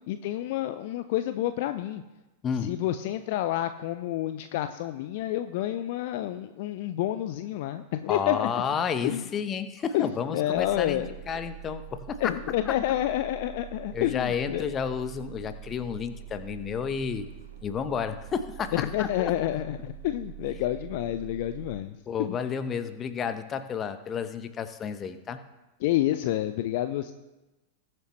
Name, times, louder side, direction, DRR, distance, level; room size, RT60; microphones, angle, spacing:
voice 1, 0.1-2.0 2.6-8.5 9.0-9.2 9.9-11.1 12.2-14.7 18.7-21.9 25.8-27.1, left 13 dB, 50° left, 10 dB, 0.5 m, -29 dB
voice 2, 2.4-2.8 8.1-12.3 12.7-12.8 13.9-17.3 17.6-19.3 22.1-25.4, left 7 dB, 25° left, 10 dB, 0.9 m, -31 dB
sound 1, 10.5-21.8, right 14 dB, 80° right, 2.0 m, -44 dB
20.5 x 7.7 x 3.2 m, 1.1 s
figure-of-eight pair, 90°, 0 cm